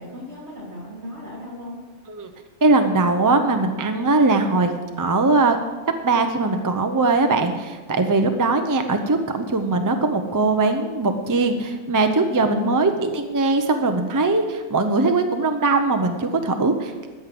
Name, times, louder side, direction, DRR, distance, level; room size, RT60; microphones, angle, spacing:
voice 1, 0.0-1.8 12.5-13.0, left 1 dB, 45° right, -5 dB, 3.4 m, -36 dB
voice 2, 2.6-4.7 5.0-5.6 6.0-17.1, right 3 dB, 20° right, 6 dB, 0.5 m, -20 dB
14.0 x 5.3 x 7.7 m, 1.3 s
omnidirectional pair, 1.6 m